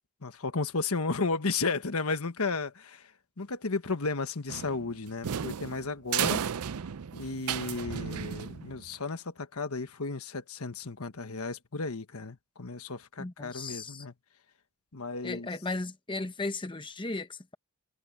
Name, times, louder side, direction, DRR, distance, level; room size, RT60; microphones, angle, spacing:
voice 1, 0.2-3.1 3.4-6.4 7.1-14.1 14.9-15.5, left 3 dB, 85° left, 1.3 m, -33 dB
sound 1, 4.5-8.9, right 8 dB, 90° right, 0.5 m, -34 dB
voice 2, 13.2-14.0 15.2-17.5, left 2 dB, 25° left, 1.0 m, -36 dB
head